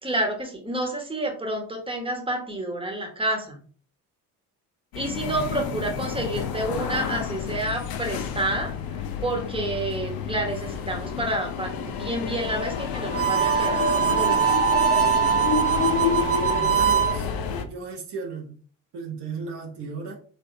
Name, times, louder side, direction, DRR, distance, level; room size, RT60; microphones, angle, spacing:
voice 1, 0.0-3.6 4.9-14.6, right 1 dB, 10° right, 1.3 m, -29 dB
sound 1, 4.9-17.6, left 6 dB, 55° left, 0.6 m, -29 dB
voice 2, 5.3-5.9 15.8-18.5 18.9-20.1, right 4 dB, 65° right, 1.1 m, -36 dB
Harmonica, 13.1-17.2, right 9 dB, 30° right, 0.9 m, -22 dB
3.3 x 3.2 x 2.6 m
hypercardioid pair, 50°, 44 cm